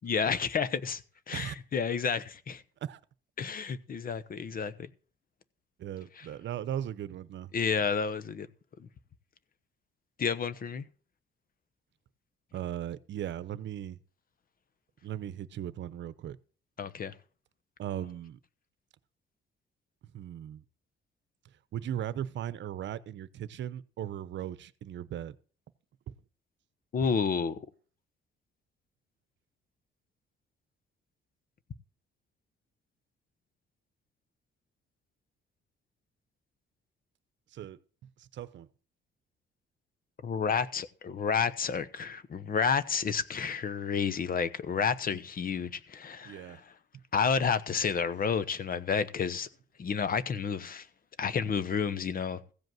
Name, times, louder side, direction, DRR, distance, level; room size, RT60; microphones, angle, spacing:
voice 1, 0.0-1.0 1.3-2.6 3.4-4.7 6.2-6.3 7.5-8.5 10.2-10.8 16.8-17.1 26.9-27.6 40.2-46.6 47.1-49.5 49.8-50.9 51.2-52.4, left 6 dB, 45° left, 1.0 m, -30 dB
voice 2, 5.8-7.5 12.5-14.0 15.0-16.4 17.8-18.4 20.0-20.6 21.7-25.4 26.1-26.2 37.5-37.8 38.2-38.7 46.2-46.6, right 11 dB, 65° right, 0.8 m, -38 dB
15.5 x 5.2 x 7.7 m
cardioid pair, 90°, 20 cm